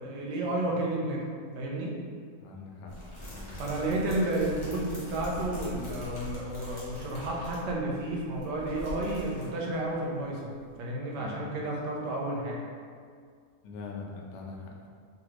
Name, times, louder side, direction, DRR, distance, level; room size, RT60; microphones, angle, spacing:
voice 1, 0.0-1.9 3.6-12.6, right 1 dB, 85° right, -2 dB, 1.2 m, -31 dB
voice 2, 2.4-2.9 3.3-4.1 11.2-11.4 13.6-14.9, left 4 dB, 85° left, -1 dB, 1.2 m, -43 dB
sound 1, 2.9-9.9 10.2-10.3 10.6-10.7, equal, 35° left, 0.4 m, -42 dB
2.9 x 2.5 x 3.0 m, 2.1 s
omnidirectional pair, 1.8 m